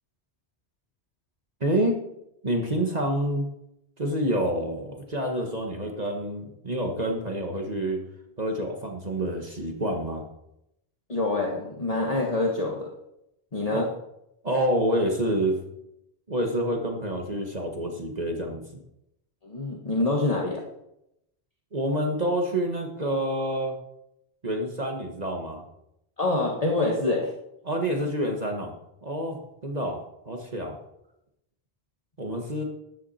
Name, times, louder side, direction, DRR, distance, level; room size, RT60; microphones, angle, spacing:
voice 1, 1.6-2.0 2.4-3.5 4.0-8.0 8.4-10.3 13.7-13.9 14.4-15.6 16.3-18.8 21.7-23.8 24.4-25.6 27.6-28.7 29.0-30.8 32.2-32.6, right 1 dB, 40° right, 2 dB, 1.7 m, -28 dB
voice 2, 11.1-12.9 13.5-13.9 19.4-20.6 26.2-27.3, left 2 dB, 35° left, -2 dB, 1.7 m, -26 dB
13.5 x 11.0 x 4.3 m, 0.81 s
omnidirectional pair, 1.1 m